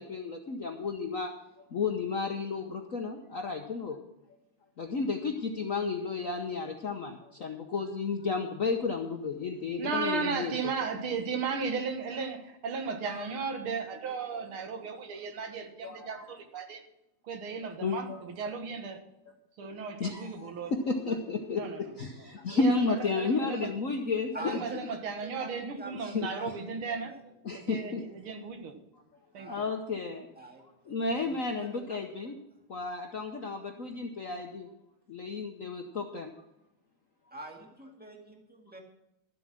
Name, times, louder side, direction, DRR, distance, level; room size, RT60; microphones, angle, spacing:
voice 1, 0.0-1.3 1.7-4.0 4.8-10.5 13.0-13.3 15.8-16.2 17.8-18.2 19.6-24.6 26.0-26.3 27.4-28.0 29.5-30.3 30.9-32.3 32.7-34.7 35.1-36.3, left 4 dB, 55° left, 4 dB, 1.0 m, -32 dB
voice 2, 9.8-16.8 17.2-19.0 19.6-20.7 21.5-21.8 22.5-23.7 24.4-27.2 27.5-28.7 29.3-29.5, right 5 dB, 75° right, 6 dB, 2.2 m, -35 dB
voice 3, 24.3-27.3 29.3-29.7 30.3-32.0 37.3-38.8, right 1 dB, 5° right, 2 dB, 1.7 m, -45 dB
13.0 x 7.8 x 6.1 m, 0.86 s
omnidirectional pair, 2.4 m